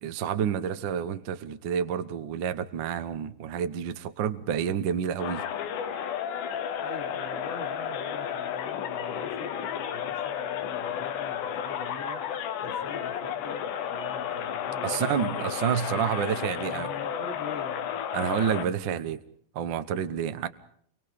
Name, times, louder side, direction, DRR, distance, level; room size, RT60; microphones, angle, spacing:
voice 1, 0.0-5.4 14.8-16.9 18.1-19.2 19.5-20.5, right 8 dB, 65° right, 11 dB, 1.1 m, -29 dB
sound 1, 5.2-18.7, left 9 dB, 80° left, 2.7 m, -32 dB
voice 2, 6.8-12.2 12.6-17.9, left 2 dB, 40° left, 1 dB, 4.2 m, -43 dB
28.5 x 24.0 x 5.1 m, 0.63 s
omnidirectional pair, 3.7 m